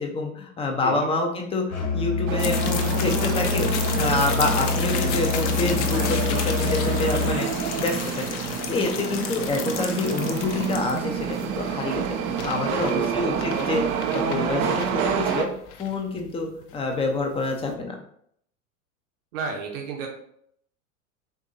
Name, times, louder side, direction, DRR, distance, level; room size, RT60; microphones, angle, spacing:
voice 1, 0.0-1.6 1.9-7.5 7.8-8.0 8.3-8.4 8.7-12.0 12.4-15.5 15.8-18.0, left 3 dB, 15° left, 3 dB, 0.8 m, -27 dB
Musical instrument, 1.7-7.4, left 6 dB, 70° left, 1.9 m, -26 dB
sound 1, 2.3-15.4, right 7 dB, 35° right, 0.6 m, -28 dB
sound 2, 2.4-17.7, left 7 dB, 55° left, 0.8 m, -34 dB
voice 2, 7.0-7.4 12.7-13.5 14.4-15.0 19.3-20.1, right 5 dB, 60° right, 1 dB, 1.2 m, -33 dB
7.1 x 2.7 x 2.7 m, 0.68 s
hypercardioid pair, 90°, 43 cm